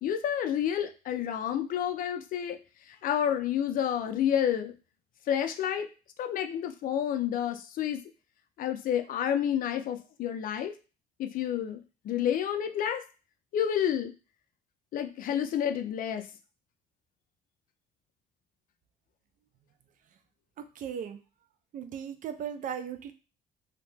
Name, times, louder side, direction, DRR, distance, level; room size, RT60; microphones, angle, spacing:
voice 1, 0.0-2.6 2.9-4.7 5.3-5.9 6.2-8.0 8.6-10.7 11.2-13.0 13.5-14.1 14.9-16.3, left 9 dB, 55° left, 7 dB, 0.4 m, -29 dB
voice 2, 20.6-21.2 21.7-23.1, right 8 dB, 50° right, 8 dB, 0.4 m, -37 dB
2.7 x 2.1 x 3.2 m, 0.34 s
cardioid pair, 110°, 17 cm